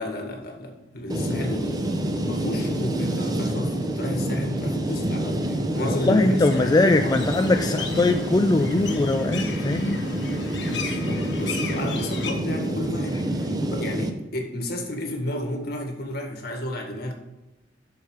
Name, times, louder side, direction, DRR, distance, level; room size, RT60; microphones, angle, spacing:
voice 1, 0.0-1.9 2.3-7.1 10.7-17.1, left 1 dB, 60° left, 2 dB, 1.9 m, -32 dB
sound 1, 1.1-14.1, right 1 dB, 20° right, 0.7 m, -27 dB
voice 2, 5.9-10.0 10.4-10.7, left 2 dB, 25° left, 6 dB, 0.3 m, -21 dB
Many seagulls, 6.4-12.3, left 4 dB, 85° left, 1.4 m, -36 dB
8.1 x 6.5 x 4.9 m, 0.98 s
head